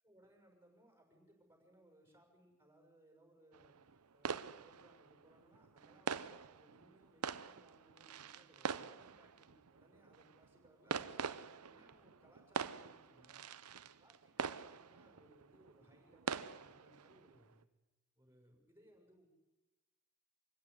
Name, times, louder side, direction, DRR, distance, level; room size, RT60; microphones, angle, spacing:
voice 1, 0.0-3.8 4.1-13.4 14.0-17.7 18.1-19.3, right 1 dB, 10° right, 2 dB, 6.3 m, -67 dB
sound 1, 3.5-17.6, right 6 dB, 90° right, 0.8 m, -45 dB
25.0 x 16.5 x 9.9 m, 1.1 s
head